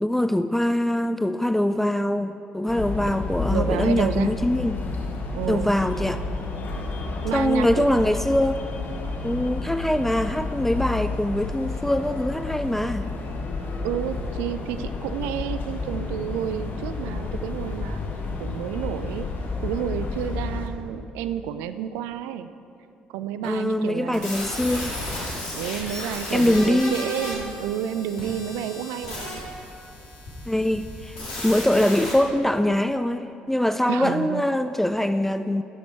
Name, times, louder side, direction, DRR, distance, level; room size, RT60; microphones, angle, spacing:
voice 1, 0.0-4.8 5.5-6.2 7.3-8.6 9.2-13.1 23.4-25.0 26.3-27.0 30.5-35.6, left 1 dB, 5° left, 10 dB, 0.3 m, -23 dB
sound 1, 2.7-20.7, left 3 dB, 50° left, 1.2 m, -31 dB
voice 2, 3.5-4.3 5.3-5.7 7.2-8.0 13.8-18.0 18.4-19.3 19.6-22.5 23.1-24.3 25.5-29.4 33.9-34.5, right 10 dB, 70° right, 11 dB, 0.4 m, -30 dB
sound 2, 24.1-32.1, left 1 dB, 75° left, 2.5 m, -34 dB
11.0 x 7.2 x 4.5 m, 2.8 s
hypercardioid pair, 50°, 4 cm